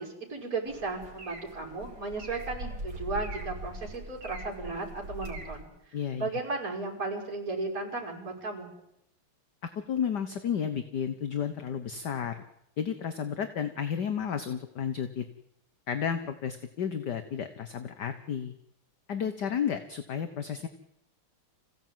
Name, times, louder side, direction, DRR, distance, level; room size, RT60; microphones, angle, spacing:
voice 1, 0.0-5.7 6.2-8.7, right 3 dB, 40° right, 0 dB, 6.1 m, -35 dB
sound 1, 0.6-5.6, right 1 dB, 60° right, 4.4 m, -41 dB
voice 2, 5.9-6.3 9.6-12.4 12.8-15.3 15.9-18.5 19.1-20.7, left 8 dB, 55° left, 9 dB, 1.7 m, -32 dB
26.5 x 16.5 x 9.2 m, 0.82 s
omnidirectional pair, 2.4 m